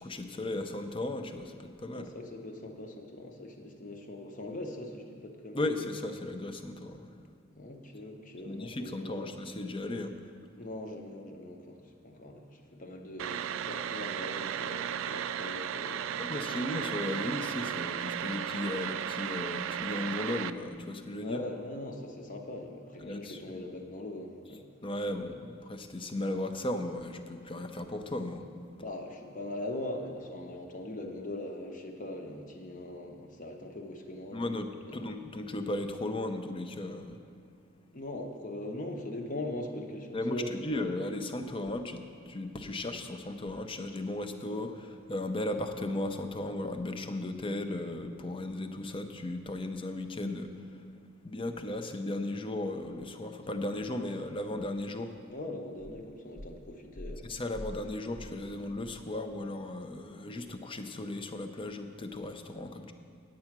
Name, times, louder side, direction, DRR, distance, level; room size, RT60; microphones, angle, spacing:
voice 1, 0.0-2.1 5.5-7.1 8.4-10.2 16.2-21.4 23.0-23.4 24.8-28.5 34.3-37.2 40.1-50.5 51.2-55.1 57.3-62.9, left 1 dB, 25° left, 7 dB, 0.6 m, -36 dB
voice 2, 1.9-5.7 7.5-9.3 10.6-16.7 21.1-24.6 28.8-34.5 34.9-35.0 37.9-40.8 45.4-45.6 55.3-57.4, left 1 dB, 45° left, 3 dB, 1.0 m, -41 dB
sound 1, 13.2-20.5, right 9 dB, 75° right, 0.3 m, -35 dB
8.9 x 8.6 x 5.9 m, 2.2 s
head